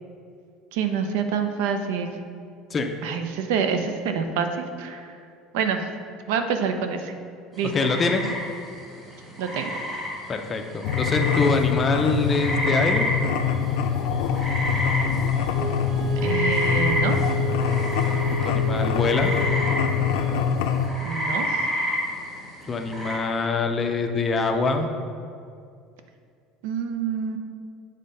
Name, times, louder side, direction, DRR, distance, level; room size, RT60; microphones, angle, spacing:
voice 1, 0.7-2.2 3.0-5.1 5.5-5.8 6.3-7.1 7.6-7.7 9.4-9.8 16.2-17.2 21.0-21.6 26.6-27.4, right 6 dB, 80° right, 7 dB, 0.6 m, -27 dB
sound 1, 7.6-23.2, equal, 15° right, 1.4 m, -30 dB
voice 2, 7.7-8.3 10.3-13.1 18.4-19.3 22.7-24.9, left 3 dB, 20° left, 5 dB, 0.4 m, -24 dB
sound 2, 10.8-20.9, left 7 dB, 80° left, 0.5 m, -24 dB
Wind instrument woodwind instrument, 15.5-20.0, right 4 dB, 40° right, 0.8 m, -32 dB
7.4 x 3.8 x 5.4 m, 2.3 s
cardioid pair, 175°, 0 cm